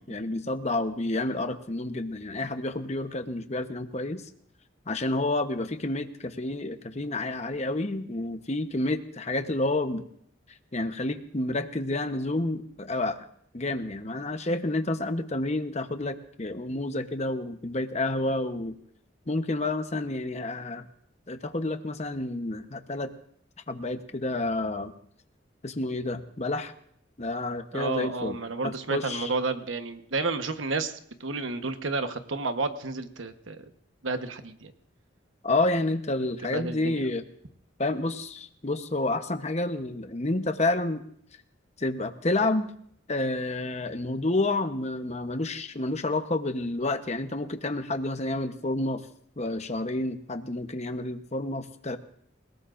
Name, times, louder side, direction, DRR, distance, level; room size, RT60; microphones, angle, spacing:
voice 1, 0.1-4.2 4.9-10.0 10.7-13.2 13.5-18.8 19.3-20.9 21.3-23.1 23.7-24.9 25.6-26.7 27.2-28.4 28.6-29.3 35.4-37.2 37.8-41.0 41.8-42.7 43.1-49.0 49.4-52.0, left 2 dB, 35° left, 8 dB, 1.0 m, -29 dB
voice 2, 27.7-33.7 34.0-34.7 36.5-37.0, right 3 dB, 80° right, 8 dB, 1.2 m, -31 dB
28.0 x 18.0 x 2.6 m, 0.65 s
head